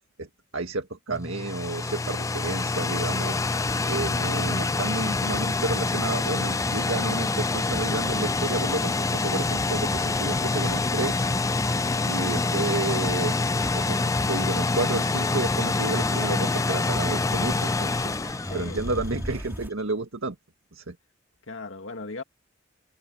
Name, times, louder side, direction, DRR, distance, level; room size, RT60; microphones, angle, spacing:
voice 1, 0.5-3.4 3.9-11.3 12.1-13.4 13.7-18.1 18.5-20.4 20.7-21.0, right 2 dB, 80° right, 1.8 m, -31 dB
sound 1, 1.1-19.2, left 3 dB, 15° left, 0.4 m, -26 dB
sound 2, 3.1-19.7, equal, 10° right, 2.8 m, -41 dB
voice 2, 4.0-4.6 12.2-12.5 18.5-18.9 21.5-22.2, left 3 dB, 70° left, 2.0 m, -39 dB
head